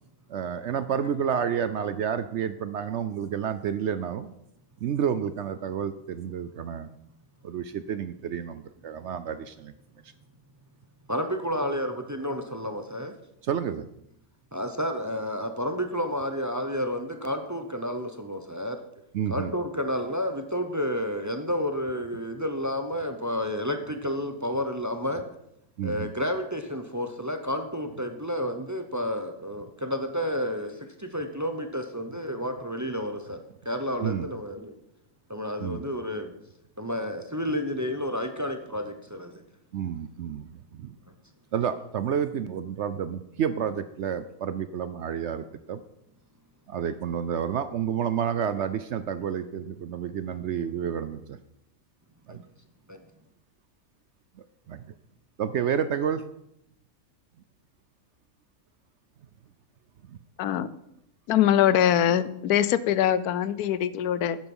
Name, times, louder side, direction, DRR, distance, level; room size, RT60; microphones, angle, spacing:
voice 1, 0.3-4.3 4.8-6.9 7.4-9.7 13.4-13.9 19.1-19.5 25.8-26.1 34.0-34.3 35.6-35.8 39.7-41.0 41.5-45.8 46.7-51.4 52.3-52.4 54.7-54.8 55.4-56.2 60.1-60.2, right 8 dB, 65° right, 12 dB, 0.7 m, -30 dB
voice 2, 11.1-13.1 14.5-18.8 19.3-25.2 25.8-33.4 33.6-34.7 35.3-36.3 36.8-39.4 52.3-52.4 52.9-53.0, equal, 15° right, 7 dB, 0.6 m, -30 dB
voice 3, 60.4-60.7 61.3-64.4, left 10 dB, 90° left, 16 dB, 1.2 m, -23 dB
10.5 x 9.0 x 5.5 m, 0.80 s
omnidirectional pair, 1.6 m